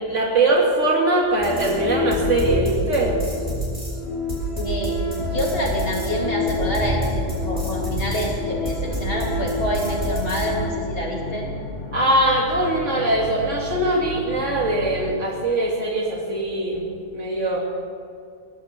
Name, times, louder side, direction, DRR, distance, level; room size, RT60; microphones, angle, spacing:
voice 1, 0.0-3.1 11.9-17.6, right 2 dB, 75° right, -1 dB, 2.8 m, -21 dB
sound 1, 1.4-10.7, left 1 dB, 40° right, 4.6 m, -26 dB
voice 2, 4.5-5.0 5.3-11.5, equal, 50° left, -2 dB, 2.8 m, -27 dB
sound 2, 5.2-15.1, left 2 dB, 85° left, 1.6 m, -34 dB
19.5 x 14.5 x 4.4 m, 2.2 s
omnidirectional pair, 1.3 m